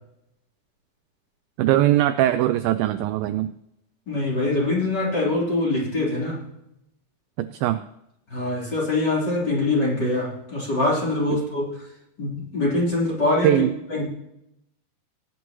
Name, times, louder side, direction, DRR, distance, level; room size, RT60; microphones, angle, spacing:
voice 1, 1.6-3.6 7.4-7.8 13.4-13.7, right 13 dB, 80° right, 10 dB, 2.1 m, -21 dB
voice 2, 4.1-6.4 8.3-11.8 12.2-14.1, left 2 dB, 25° left, -5 dB, 4.1 m, -24 dB
19.5 x 9.5 x 3.0 m, 0.83 s
omnidirectional pair, 4.6 m